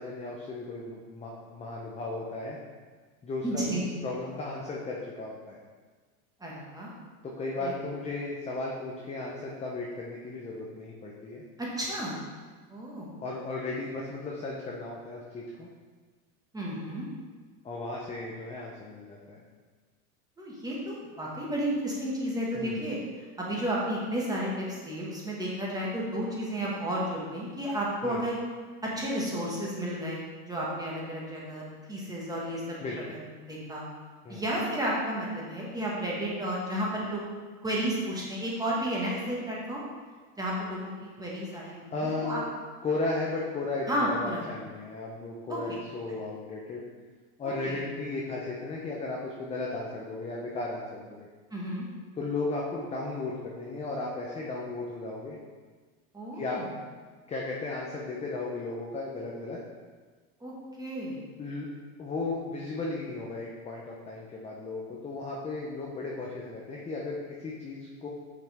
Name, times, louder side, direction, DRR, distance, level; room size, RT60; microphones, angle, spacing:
voice 1, 0.0-2.6 3.2-5.6 7.2-11.4 13.2-15.7 17.6-19.4 22.5-22.8 28.0-28.2 32.8-33.2 34.2-34.4 41.9-42.4 42.8-46.8 47.4-51.3 52.2-55.4 56.3-56.6 57.3-59.6 61.4-61.7 62.0-68.1, left 3 dB, 15° left, -3 dB, 0.6 m, -35 dB
voice 2, 3.4-3.9 6.4-6.9 7.6-7.7 11.6-12.2 12.7-13.1 16.5-17.0 20.4-23.0 23.4-28.4 28.8-32.8 33.1-33.8 34.3-37.2 37.6-39.8 40.4-40.9 41.2-42.4 43.9-44.4 45.5-45.8 47.4-47.8 51.5-51.8 56.1-56.7 60.4-61.3, equal, 10° right, -5 dB, 1.6 m, -32 dB
5.8 x 5.7 x 3.5 m, 1.5 s
supercardioid pair, 115°, 46 cm